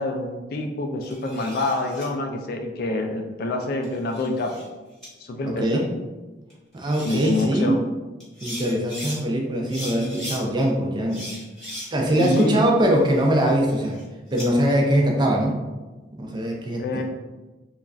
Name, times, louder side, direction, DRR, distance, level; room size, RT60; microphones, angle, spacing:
voice 1, 0.0-4.6 5.2-5.8 7.0-7.8 12.2-12.6 16.8-17.0, left 2 dB, 55° left, 4 dB, 0.3 m, -26 dB
sound 1, 1.0-2.1 3.6-4.7 5.0-5.1 6.5-6.6 6.8-7.4 8.2-9.2 9.7-10.4 11.1-12.6 13.0-14.5, equal, 5° left, 0.9 m, -38 dB
voice 2, 5.4-5.9 6.7-7.8 8.4-11.3 11.9-14.0 14.3-15.6 16.2-17.0, right 1 dB, 25° right, 0 dB, 0.4 m, -22 dB
3.1 x 2.4 x 2.3 m, 1.2 s
head